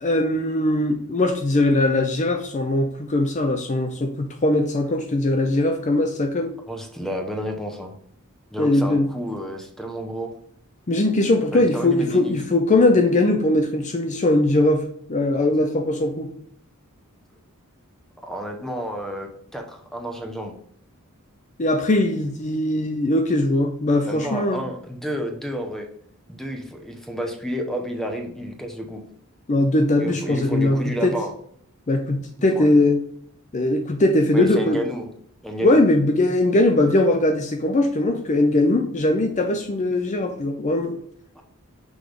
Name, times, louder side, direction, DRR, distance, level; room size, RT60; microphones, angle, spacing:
voice 1, 0.0-6.5 8.6-9.1 10.9-16.3 21.6-24.6 29.5-31.1 31.9-33.0 33.5-34.8 35.6-41.0, left 2 dB, 35° left, 5 dB, 0.5 m, -20 dB
voice 2, 6.7-7.9 8.5-10.3 11.5-12.4 18.2-20.5 24.0-25.9 26.3-29.0 30.0-31.3 32.4-32.7 34.3-35.1 35.4-35.8 41.3-41.4, equal, ahead, 3 dB, 0.8 m, -30 dB
6.1 x 3.4 x 5.0 m, 0.66 s
head